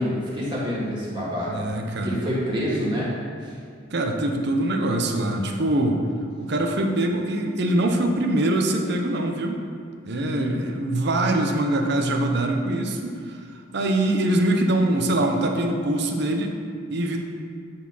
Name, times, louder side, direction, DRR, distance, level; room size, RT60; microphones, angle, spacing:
voice 1, 0.0-1.6 2.0-3.1 3.4-3.5 10.1-10.5, equal, 25° right, -7 dB, 2.0 m, -27 dB
voice 2, 1.5-2.2 3.9-6.0 6.4-9.6 10.0-13.4 13.7-16.6 16.9-17.2, right 1 dB, 55° right, 3 dB, 0.7 m, -23 dB
9.8 x 4.3 x 5.6 m, 2.3 s
head